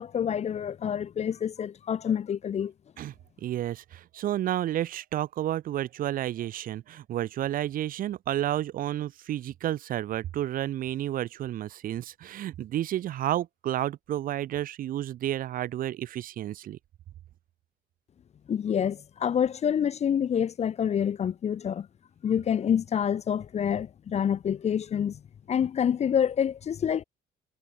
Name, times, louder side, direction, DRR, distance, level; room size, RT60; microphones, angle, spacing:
voice 1, 0.0-2.7 18.5-21.9 22.2-25.2 25.5-27.0, left 8 dB, 40° left, 0.8 m, -27 dB
voice 2, 3.4-16.8, right 12 dB, 55° right, 0.7 m, -31 dB
cardioid pair, 110°, 17 cm